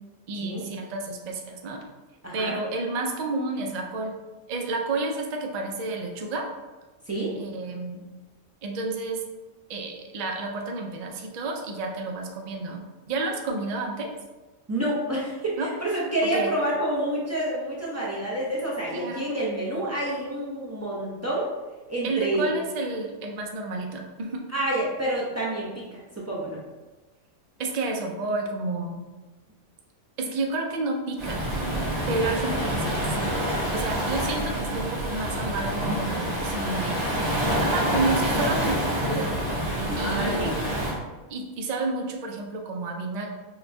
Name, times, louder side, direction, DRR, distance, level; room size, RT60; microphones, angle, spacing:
voice 1, 0.3-1.8 2.3-4.2 4.5-6.5 7.4-8.0 8.6-9.2 9.7-14.1 15.6-15.7 16.3-16.5 18.9-19.3 22.0-24.4 27.6-29.0 30.2-31.4 32.1-33.3 33.7-37.0 37.6-39.4 40.0-40.6 41.3-43.3, right 3 dB, 90° right, 2 dB, 0.3 m, -30 dB
voice 2, 2.2-2.5 7.1-7.3 14.7-21.5 21.9-22.4 24.5-25.8 26.2-26.6 33.8-33.9 39.9-40.7, right 1 dB, 20° right, -6 dB, 0.5 m, -28 dB
Waves surf, 31.2-40.9, equal, 65° right, 1.5 m, -27 dB
5.7 x 2.2 x 2.6 m, 1.2 s
omnidirectional pair, 1.3 m